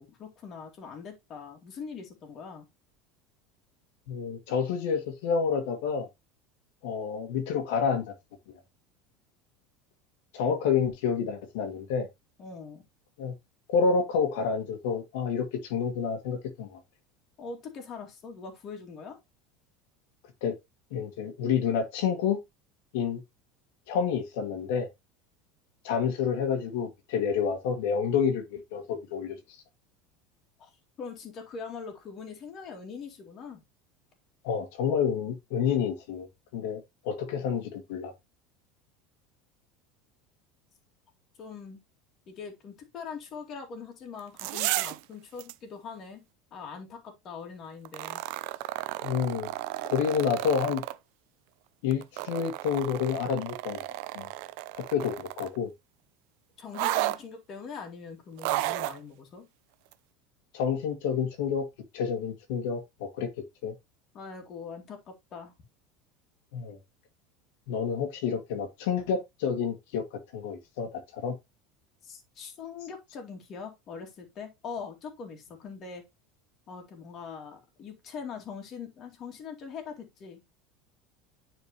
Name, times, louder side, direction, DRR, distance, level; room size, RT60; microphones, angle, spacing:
voice 1, 0.0-2.7 12.4-12.8 17.4-19.2 30.6-33.6 41.4-41.8 42.3-46.2 46.5-48.2 56.6-59.5 64.1-65.5 72.0-76.0 76.7-80.4, left 5 dB, 30° left, 2.3 m, -42 dB
voice 2, 4.1-6.1 6.8-8.0 10.3-12.1 13.2-13.3 13.7-16.8 20.4-20.5 20.9-22.4 22.9-23.2 23.9-24.9 25.8-29.4 34.4-36.3 36.5-36.8 37.0-38.1 49.0-49.5 49.8-50.8 51.8-53.9 54.1-54.3 54.8-55.7 60.5-61.6 61.9-63.3 63.6-63.7 66.5-66.8 67.7-71.3, left 6 dB, 70° left, 1.6 m, -29 dB
sound 1, 44.2-45.0 45.4-45.5 47.9-51.0 51.9-55.6 56.7-57.2 58.4-59.0 59.9-60.0, right 17 dB, 60° right, 0.5 m, -33 dB
9.8 x 4.4 x 2.9 m
cardioid pair, 160°, 0 cm